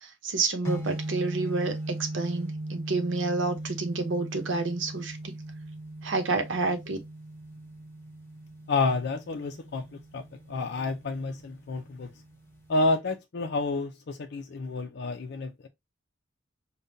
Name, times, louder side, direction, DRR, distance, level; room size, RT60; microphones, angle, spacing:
voice 1, 0.0-1.7 2.1-5.3 6.0-7.0, right 3 dB, 85° right, 0.8 m, -29 dB
sound 1, 0.7-12.7, right 1 dB, 15° left, 1.0 m, -39 dB
voice 2, 8.7-12.1 12.7-15.7, left 3 dB, 60° left, 0.5 m, -30 dB
5.1 x 2.2 x 2.6 m
head